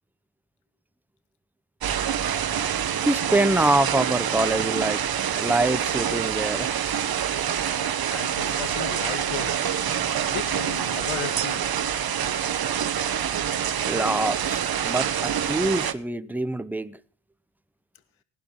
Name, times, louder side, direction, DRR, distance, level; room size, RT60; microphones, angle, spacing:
sound 1, 1.8-15.9, right 9 dB, 45° right, 1.2 m, -26 dB
voice 1, 3.1-5.0 5.4-6.8 13.9-17.0, right 2 dB, 5° right, 0.7 m, -25 dB
voice 2, 8.1-9.8 10.3-11.8, left 8 dB, 70° left, 1.6 m, -35 dB
18.5 x 11.5 x 3.8 m
cardioid pair, 110°, 50 cm